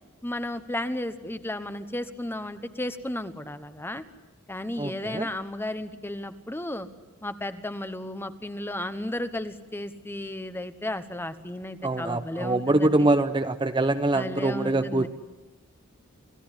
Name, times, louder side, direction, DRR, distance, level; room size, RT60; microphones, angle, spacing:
voice 1, 0.2-4.0 4.5-6.9 7.2-13.1 14.1-15.1, left 1 dB, 10° left, 11 dB, 1.1 m, -34 dB
voice 2, 4.8-5.3 11.8-15.1, right 2 dB, 25° right, 10 dB, 0.8 m, -24 dB
28.0 x 16.5 x 10.0 m, 1.1 s
head